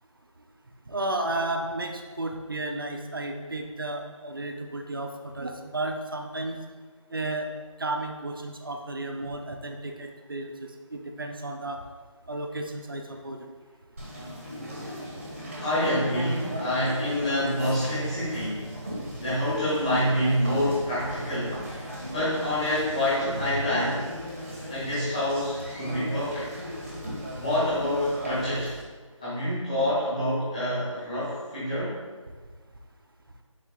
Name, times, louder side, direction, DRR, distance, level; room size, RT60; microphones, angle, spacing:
voice 1, 0.9-6.6 7.1-7.5 7.8-11.8 12.3-13.5, right 2 dB, 40° right, 3 dB, 0.6 m, -33 dB
Conversation, 14.0-28.8, equal, 25° right, 1.0 m, -36 dB
voice 2, 15.6-18.7 19.2-21.7 22.1-24.0 24.7-26.5 27.3-28.7 29.2-32.0, left 1 dB, 10° left, -12 dB, 1.6 m, -27 dB
7.3 x 4.1 x 3.7 m, 1.4 s
figure-of-eight pair, 175°, 17 cm